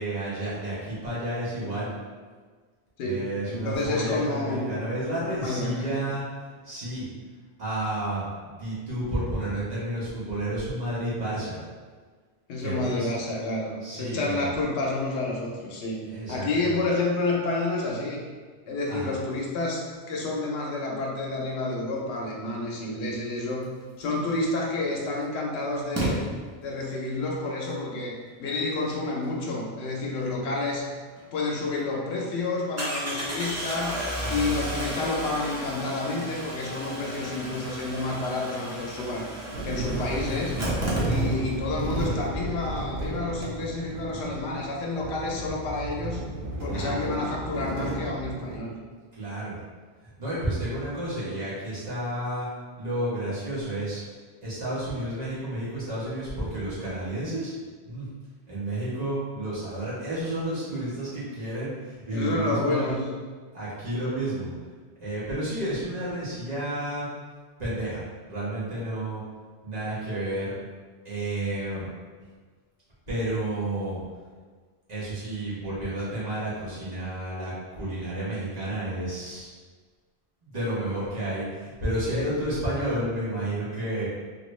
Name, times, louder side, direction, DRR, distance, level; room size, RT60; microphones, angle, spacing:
voice 1, 0.0-1.9 3.0-6.2 6.6-7.1 7.6-11.6 12.6-13.1 13.8-14.5 16.1-16.8 18.9-19.1 34.2-34.5 46.7-47.0 49.1-49.5 50.0-52.5 52.8-54.0 54.4-57.5 57.8-58.0 58.5-62.9 63.5-64.5 65.0-67.1 67.6-68.0 68.3-69.2 69.6-70.5 71.0-71.9 73.1-74.0 74.9-79.5 80.4-84.1, right 1 dB, 40° right, -10 dB, 1.1 m, -31 dB
voice 2, 3.0-4.7 5.3-5.8 12.5-16.0 16.3-18.2 18.7-23.7 24.0-26.2 26.6-30.9 31.3-34.0 34.3-39.2 39.6-40.6 41.0-46.2 46.6-48.7 62.1-63.1 63.9-64.1 82.1-82.3, left 2 dB, 90° left, -2 dB, 0.9 m, -29 dB
Engine starting, 24.4-24.5 25.9-26.1 31.2-31.3 31.6-31.7 32.8-41.6 41.9-42.0 42.2-42.3, right 1 dB, 20° right, 0.5 m, -33 dB
sound 1, 39.5-48.6, right 2 dB, 75° right, 0.8 m, -32 dB
2.9 x 2.5 x 3.0 m, 1.5 s
omnidirectional pair, 1.1 m